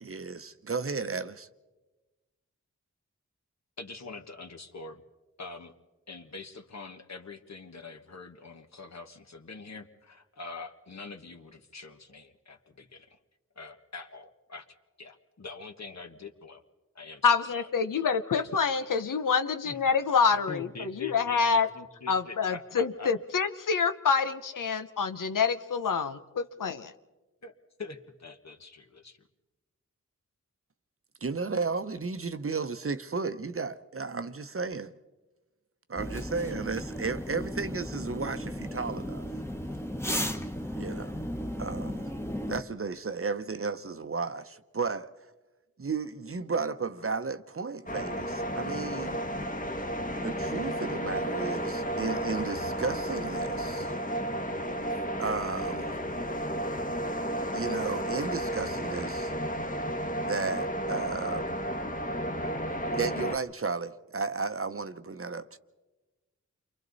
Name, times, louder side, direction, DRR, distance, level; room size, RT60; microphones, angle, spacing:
voice 1, 0.0-1.5 31.2-34.9 35.9-39.3 40.8-41.1 41.6-42.0 42.5-45.1 45.8-49.2 50.2-53.9 55.2-55.9 57.5-59.3 60.3-61.6 62.9-65.6, right 4 dB, 45° right, 0.8 m, -34 dB
voice 2, 3.8-5.0 5.4-5.7 6.1-13.2 13.5-16.6 16.9-17.7 17.9-18.6 19.6-19.8 20.5-23.1 27.4-27.5 27.8-29.2, left 4 dB, 60° left, 1.5 m, -44 dB
voice 3, 17.2-21.7 22.1-26.9, left 5 dB, 85° left, 0.8 m, -27 dB
sound 1, 36.0-42.6, equal, 10° left, 1.2 m, -35 dB
sound 2, 47.9-63.4, right 1 dB, 25° left, 1.3 m, -32 dB
29.0 x 24.0 x 4.1 m
wide cardioid pair, 50°, 31 cm